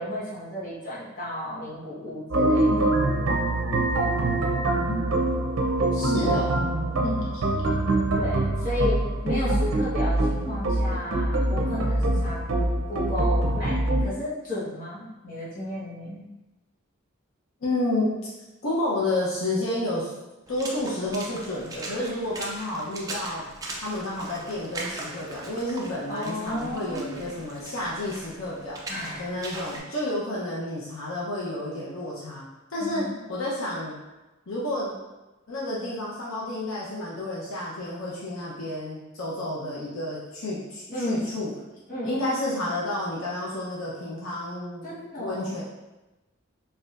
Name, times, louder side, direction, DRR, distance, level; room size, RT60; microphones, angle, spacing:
voice 1, 0.0-2.9 6.9-7.3 8.2-9.0 9.2-13.7 14.0-16.3 26.1-27.3 28.9-29.3 32.8-33.2 40.9-41.3 41.9-42.1 44.8-45.6, left 1 dB, 40° left, -9 dB, 1.2 m, -33 dB
sound 1, 2.3-14.0, right 1 dB, 75° right, 0.6 m, -24 dB
voice 2, 5.9-6.6 17.6-18.2 18.6-20.1 20.5-23.4 23.8-28.8 29.2-32.4 32.7-33.0 33.3-33.9 34.5-34.9 35.5-41.5 42.0-44.9 45.2-45.6, left 1 dB, 80° left, -6 dB, 0.8 m, -30 dB
Water / Splash splatter, 20.5-29.8, right 2 dB, 15° right, 0.4 m, -40 dB
4.2 x 2.7 x 2.5 m, 1.1 s
head